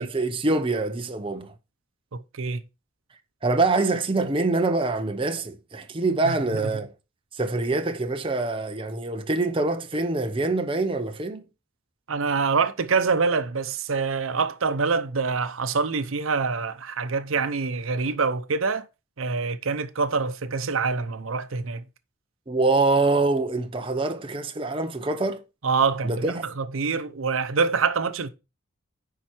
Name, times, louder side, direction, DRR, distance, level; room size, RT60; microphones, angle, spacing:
voice 1, 0.0-1.5 3.4-6.9 7.3-11.5 22.5-25.4 26.0-26.4, right 3 dB, 25° right, 0.7 m, -25 dB
voice 2, 2.1-2.6 6.2-6.3 12.1-18.9 19.2-21.8 25.6-28.3, right 4 dB, 80° right, 0.7 m, -25 dB
10.0 x 4.4 x 4.4 m
head